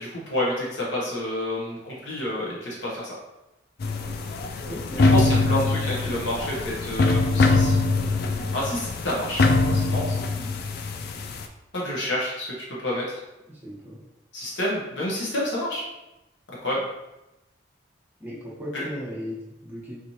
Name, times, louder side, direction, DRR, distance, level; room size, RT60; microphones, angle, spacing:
voice 1, 0.0-3.1 5.0-7.7 8.5-9.4 9.7-10.1 11.7-12.5 12.8-13.2 14.3-15.8 16.6-16.8 18.7-18.8, left 1 dB, 70° left, -5 dB, 1.0 m, -29 dB
sound 1, 3.8-11.4, left 3 dB, 55° left, 0.3 m, -23 dB
voice 2, 4.6-5.1 13.5-14.0 18.2-20.0, equal, 10° right, -6 dB, 1.0 m, -36 dB
4.2 x 3.1 x 2.8 m, 0.97 s
head